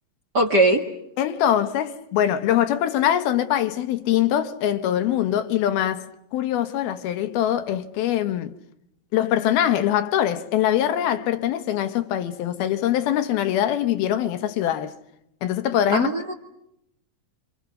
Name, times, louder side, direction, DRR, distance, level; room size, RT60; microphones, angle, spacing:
voice 1, 0.3-0.9 15.9-16.3, right 2 dB, 40° right, 1.7 m, -20 dB
voice 2, 1.2-6.1 6.3-8.6 9.1-15.0 15.4-16.1, left 11 dB, 80° left, 3.2 m, -23 dB
29.5 x 27.0 x 6.6 m
omnidirectional pair, 4.4 m